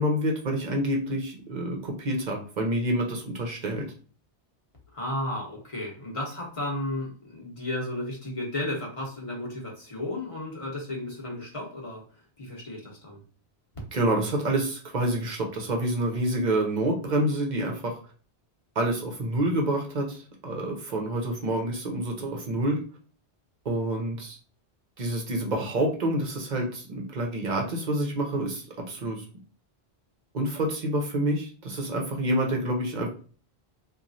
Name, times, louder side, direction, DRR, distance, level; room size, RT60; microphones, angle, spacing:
voice 1, 0.0-3.9 13.9-18.0 18.8-22.8 23.6-24.4 25.0-29.2 30.3-33.1, right 1 dB, 50° right, 2 dB, 0.7 m, -28 dB
voice 2, 4.9-12.1 12.4-13.2, left 1 dB, 35° left, -2 dB, 0.8 m, -33 dB
2.9 x 2.3 x 2.5 m, 0.40 s
omnidirectional pair, 1.1 m